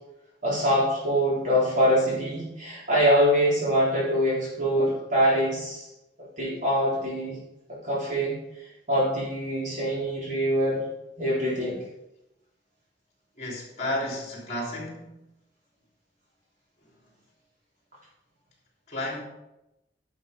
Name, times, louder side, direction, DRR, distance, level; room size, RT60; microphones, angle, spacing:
voice 1, 0.4-5.9 6.4-7.4 7.8-8.4 8.9-10.8 11.2-11.8, equal, 45° right, -7 dB, 3.8 m, -24 dB
voice 2, 13.4-15.2 18.9-19.2, left 1 dB, 40° left, -2 dB, 3.7 m, -32 dB
10.5 x 6.6 x 5.2 m, 0.91 s
head